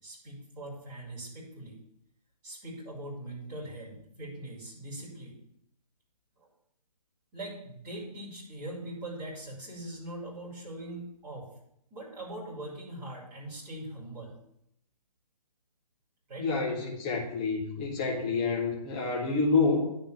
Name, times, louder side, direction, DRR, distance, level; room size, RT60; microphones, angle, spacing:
voice 1, 0.0-1.8 2.4-5.4 6.4-6.5 7.3-11.5 11.9-14.4 16.3-16.5, right 1 dB, 15° right, -9 dB, 4.0 m, -41 dB
voice 2, 16.4-20.0, left 4 dB, 10° left, -3 dB, 0.6 m, -28 dB
10.5 x 3.8 x 6.9 m, 0.76 s
hypercardioid pair, 170°, 21 cm